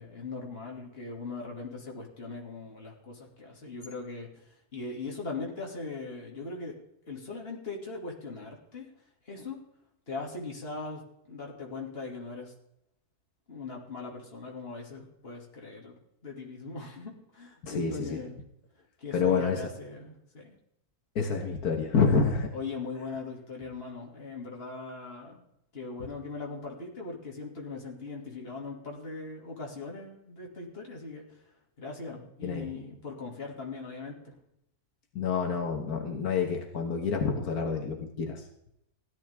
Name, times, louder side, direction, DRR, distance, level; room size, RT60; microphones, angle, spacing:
voice 1, 0.0-4.3 4.7-6.7 7.1-8.9 9.3-9.6 10.1-11.0 11.3-12.5 13.5-15.9 16.2-18.4 19.0-20.5 22.5-25.4 25.7-31.2 31.8-34.4, left 3 dB, 40° left, -1 dB, 2.7 m, -40 dB
voice 2, 17.6-18.2 19.1-19.7 21.2-22.5 32.4-32.7 35.2-38.4, left 5 dB, 80° left, 2 dB, 1.9 m, -28 dB
16.5 x 11.5 x 3.6 m, 0.79 s
omnidirectional pair, 1.6 m